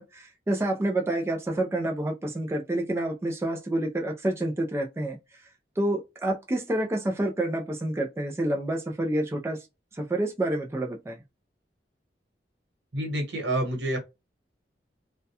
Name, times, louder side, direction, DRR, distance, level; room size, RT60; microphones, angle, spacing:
voice 1, 0.0-5.2 5.8-9.6 9.9-11.2, right 1 dB, 15° right, 0.3 m, -28 dB
voice 2, 12.9-14.0, right 1 dB, 80° right, 1.1 m, -28 dB
2.2 x 2.1 x 2.7 m
head